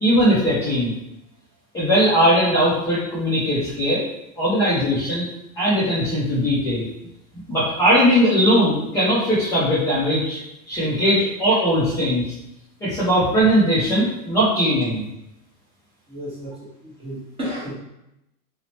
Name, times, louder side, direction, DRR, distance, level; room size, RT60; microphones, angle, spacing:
voice 1, 0.0-0.9 1.7-4.0 4.4-5.3 5.6-6.9 7.5-10.4 10.7-12.2 12.8-15.0, equal, 10° left, -10 dB, 0.4 m, -19 dB
voice 2, 16.1-16.5 16.8-17.8, equal, 10° right, -6 dB, 0.8 m, -32 dB
2.7 x 2.1 x 2.8 m, 0.87 s
hypercardioid pair, 120°, 45 cm